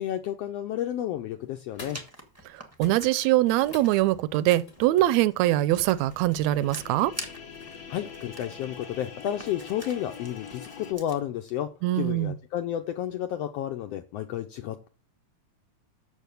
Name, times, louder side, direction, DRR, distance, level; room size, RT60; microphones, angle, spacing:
voice 1, 0.0-2.0 7.9-11.7 11.9-14.9, left 11 dB, 80° left, 1.4 m, -31 dB
sound 1, 0.9-1.2 1.7-2.1 2.4-2.5 2.8-5.2 7.2-7.3, left 3 dB, 30° left, 1.2 m, -47 dB
Writing, 1.9-11.2, right 1 dB, 20° right, 0.4 m, -46 dB
voice 2, 2.8-7.1 11.8-12.3, right 15 dB, 80° right, 1.7 m, -23 dB
sound 2, 5.7-10.9, left 6 dB, 55° left, 1.0 m, -44 dB
6.9 x 6.4 x 6.8 m
omnidirectional pair, 3.5 m